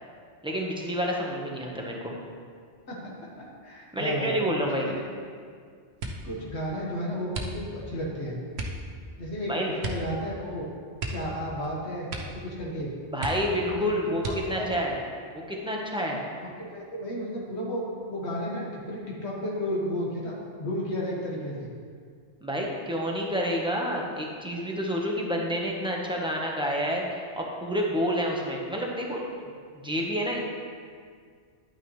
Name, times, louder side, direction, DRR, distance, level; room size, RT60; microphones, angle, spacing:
voice 1, 0.4-2.1 3.9-4.9 9.5-9.8 13.1-15.0 15.5-16.2 22.4-29.2 29.7-30.4, equal, 5° right, -2 dB, 1.1 m, -29 dB
voice 2, 3.4-4.3 4.6-5.0 6.2-8.4 9.2-10.7 11.1-12.9 13.7-13.9 14.2-14.9 16.7-21.7, equal, 75° left, -4 dB, 1.8 m, -33 dB
sound 1, 6.0-6.4 7.3-7.9 8.5-8.9 9.8-10.1 10.4-10.5 10.9-11.7 12.0-12.5 12.8-12.9 13.2-13.7 14.2-14.7 15.4-16.1 16.4-16.8, right 2 dB, 70° right, 1.2 m, -35 dB
10.5 x 8.9 x 3.2 m, 2.1 s
omnidirectional pair, 1.2 m